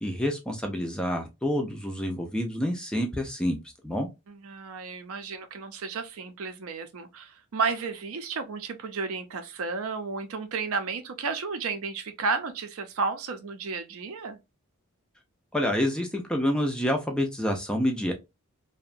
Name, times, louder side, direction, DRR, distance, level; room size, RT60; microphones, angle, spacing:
voice 1, 0.0-3.6 3.8-4.1 15.5-18.1, equal, 5° left, 0.3 m, -28 dB
voice 2, 4.3-14.4, right 4 dB, 70° right, 0.5 m, -32 dB
2.7 x 2.1 x 2.4 m
head